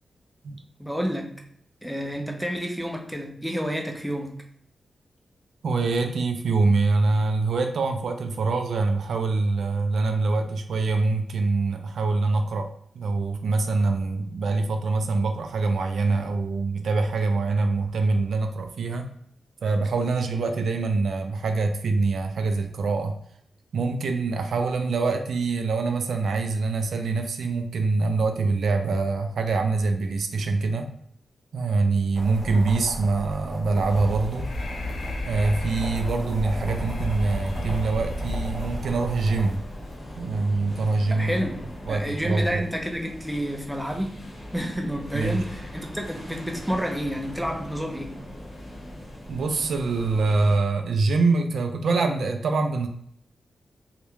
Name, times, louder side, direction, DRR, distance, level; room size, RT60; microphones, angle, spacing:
voice 1, 0.8-1.4 1.8-4.4 41.1-44.1 44.5-48.2, equal, ahead, 1 dB, 0.4 m, -30 dB
voice 2, 5.6-19.1 19.6-23.2 23.7-30.9 31.5-34.5 35.3-39.6 40.2-41.5 41.9-42.6 45.1-45.4 49.3-52.9, right 3 dB, 75° right, 5 dB, 0.3 m, -24 dB
sound 1, 32.1-39.5, equal, 30° right, 0.8 m, -36 dB
sound 2, 33.9-50.6, left 1 dB, 30° left, 0.8 m, -37 dB
Breathing, 34.0-40.0, left 1 dB, 80° left, 0.4 m, -36 dB
2.3 x 2.1 x 3.0 m, 0.67 s
wide cardioid pair, 145°, 0 cm